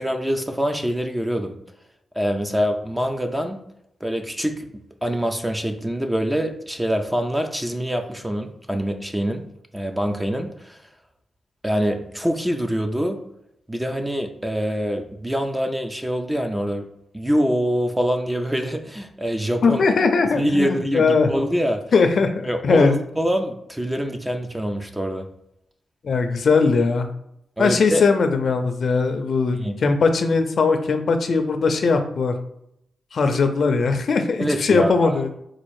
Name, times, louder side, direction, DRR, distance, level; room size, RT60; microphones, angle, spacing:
voice 1, 0.0-1.6 2.2-3.6 4.0-9.5 9.7-10.8 11.6-13.2 13.7-16.8 17.1-19.8 20.3-21.8 22.4-25.3 27.6-28.0 29.5-29.8 34.4-35.2, equal, 5° right, 5 dB, 0.4 m, -25 dB
voice 2, 19.6-21.3 21.9-23.0 26.0-27.1 27.6-32.3 33.1-35.3, left 4 dB, 50° left, 7 dB, 0.5 m, -19 dB
4.1 x 2.4 x 4.7 m, 0.78 s
wide cardioid pair, 160°, 0 cm